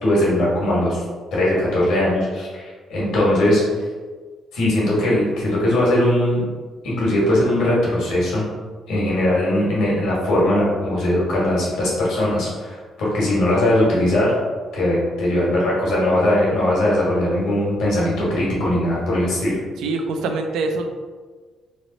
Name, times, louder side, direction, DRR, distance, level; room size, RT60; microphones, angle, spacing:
voice 1, 0.0-1.0 1.3-3.6 4.5-6.4 6.8-8.4 8.9-14.3 14.7-19.6, left 1 dB, 85° left, -5 dB, 1.3 m, -20 dB
voice 2, 19.8-20.9, right 3 dB, 85° right, 5 dB, 0.3 m, -24 dB
3.2 x 2.0 x 3.8 m, 1.4 s
cardioid pair, 90°, 0 cm